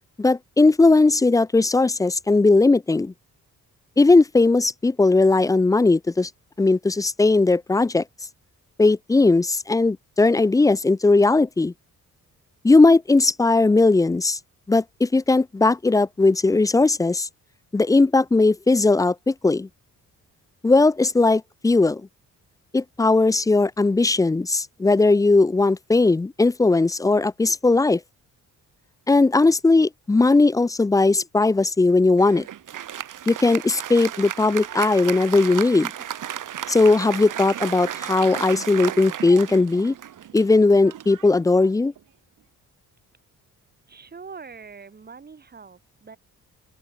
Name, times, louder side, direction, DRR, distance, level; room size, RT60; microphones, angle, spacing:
voice 1, 0.2-3.1 4.0-6.3 6.6-8.0 8.8-11.7 12.6-14.4 14.7-17.3 17.7-19.7 20.6-22.0 22.7-28.0 29.1-32.5 33.3-35.9 36.7-39.9 40.3-41.9, left 3 dB, 10° left, 0.4 m, -18 dB
Applause, 32.2-42.0, right 10 dB, 70° right, 5.6 m, -34 dB
voice 2, 43.9-46.2, right 5 dB, 30° right, 7.2 m, -43 dB
open air
wide cardioid pair, 170°, 33 cm